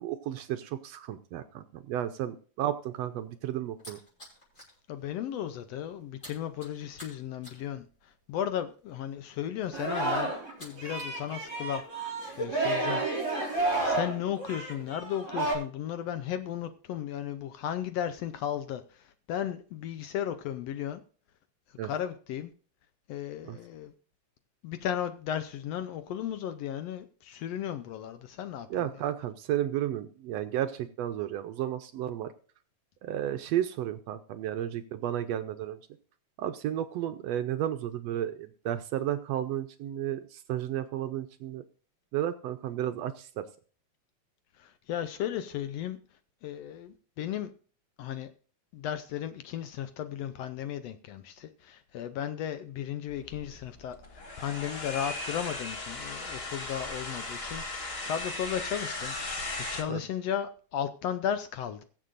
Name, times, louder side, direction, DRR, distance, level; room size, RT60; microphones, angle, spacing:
voice 1, 0.0-4.0 21.8-21.9 23.4-23.6 28.7-32.3 33.0-35.8 36.4-41.6 42.1-43.4 59.9-60.0, right 11 dB, 75° right, 1.7 m, -33 dB
sound 1, 3.0-4.8 5.1-5.4 5.6-11.2 11.5-12.4, equal, 25° left, 6.6 m, -46 dB
voice 2, 4.9-10.3 10.6-11.8 12.3-13.0 13.8-21.0 21.8-22.5 23.1-23.9 24.6-28.7 44.6-46.0 46.4-47.5 48.0-48.3 48.7-59.1 59.6-61.8, left 10 dB, 75° left, 1.6 m, -35 dB
Singing, 9.7-10.5 10.8-15.5, right 2 dB, 30° right, 5.1 m, -31 dB
sound 2, 53.1-59.8, left 2 dB, 50° left, 0.7 m, -37 dB
22.0 x 7.5 x 2.6 m
omnidirectional pair, 3.3 m